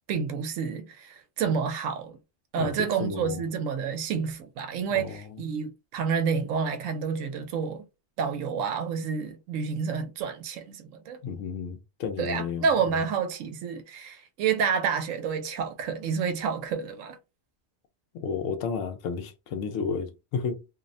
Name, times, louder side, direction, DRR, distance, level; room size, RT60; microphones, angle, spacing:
voice 1, 0.1-2.2 2.5-7.8 8.2-11.2 12.2-17.2, right 6 dB, 85° right, 1.0 m, -29 dB
voice 2, 2.6-3.4 4.9-5.4 11.2-13.0 18.1-20.7, left 5 dB, 85° left, 1.0 m, -32 dB
2.7 x 2.0 x 2.5 m
omnidirectional pair, 1.3 m